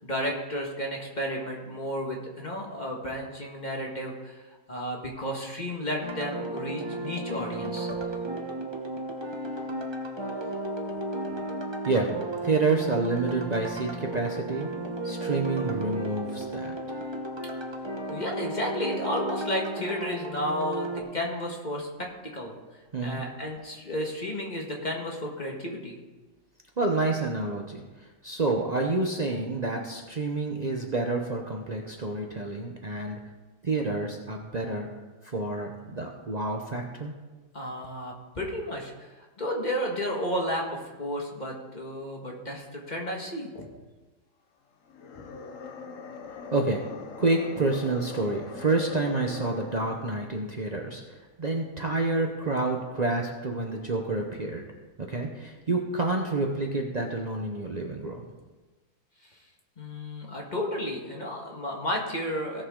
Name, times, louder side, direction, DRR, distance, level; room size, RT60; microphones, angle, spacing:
voice 1, 0.0-4.4 4.7-8.1 11.3-11.4 18.1-22.1 22.3-22.6 23.0-26.0 37.5-39.1 39.4-43.7 59.8-62.6, equal, 25° left, -1 dB, 1.5 m, -32 dB
sound 1, 6.0-21.0, right 1 dB, 20° right, 0.6 m, -34 dB
voice 2, 12.4-14.7 15.0-16.8 22.9-23.2 26.8-27.8 28.2-33.2 33.6-34.9 35.3-37.1 46.5-46.8 47.2-51.0 51.4-54.6 55.0-58.2, right 3 dB, 85° right, 1 dB, 0.3 m, -28 dB
sound 2, 44.8-50.2, left 5 dB, 55° left, 1.0 m, -42 dB
17.5 x 6.7 x 3.8 m, 1.2 s
omnidirectional pair, 2.2 m